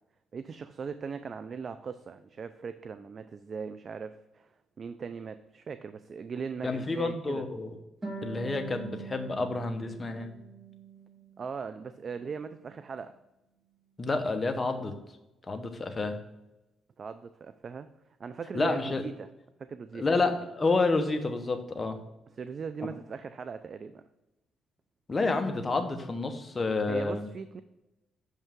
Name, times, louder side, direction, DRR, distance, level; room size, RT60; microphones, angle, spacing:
voice 1, 0.3-4.5 4.8-7.5 11.4-13.2 17.0-17.9 18.2-19.3 19.6-20.1 22.4-24.0 26.9-27.6, right 6 dB, 45° right, 12 dB, 0.4 m, -39 dB
voice 2, 6.6-7.7 8.2-10.3 14.0-14.9 15.5-16.2 18.5-19.0 19.9-22.0 25.1-27.3, left 3 dB, 25° left, 6 dB, 1.0 m, -29 dB
Harp, 8.0-11.4 11.8-12.8, right 4 dB, 25° right, 2.0 m, -44 dB
6.6 x 5.5 x 3.6 m, 0.98 s
cardioid pair, 90°, 0 cm